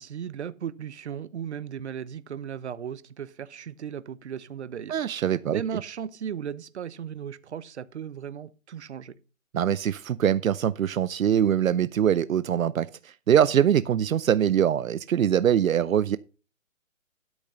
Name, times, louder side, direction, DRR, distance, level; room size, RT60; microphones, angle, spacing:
voice 1, 0.0-5.0 5.5-9.2, right 8 dB, 55° right, 1.0 m, -36 dB
voice 2, 4.9-5.6 9.5-12.9 13.3-16.2, right 9 dB, 80° right, 0.7 m, -23 dB
12.0 x 6.4 x 5.5 m
hypercardioid pair, 160°, 40 cm